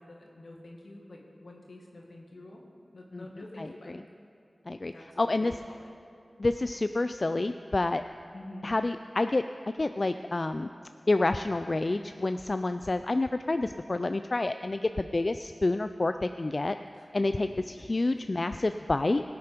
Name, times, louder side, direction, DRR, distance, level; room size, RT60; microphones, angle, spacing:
voice 1, 0.0-2.6 2.9-3.9 4.9-5.9 8.3-8.7 16.9-17.1, left 1 dB, 80° left, 0 dB, 1.8 m, -47 dB
voice 2, 3.6-4.0 4.7-5.5 6.4-8.0 8.6-10.7 11.1-16.8 17.1-19.2, left 2 dB, 50° left, 9 dB, 0.3 m, -28 dB
17.5 x 6.9 x 5.2 m, 2.6 s
cardioid pair, 45°, 0 cm